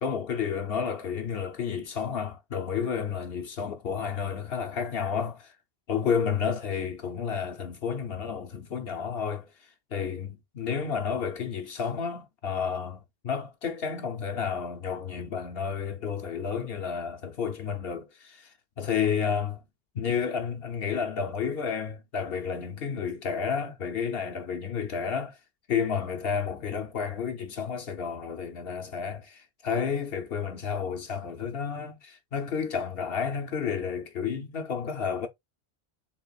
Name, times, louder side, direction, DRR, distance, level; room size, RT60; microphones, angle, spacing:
voice 1, 0.0-5.5 5.9-19.6 19.9-25.4 25.7-35.3, left 6 dB, 65° left, 1.0 m, -31 dB
4.0 x 2.5 x 3.9 m
omnidirectional pair, 1.1 m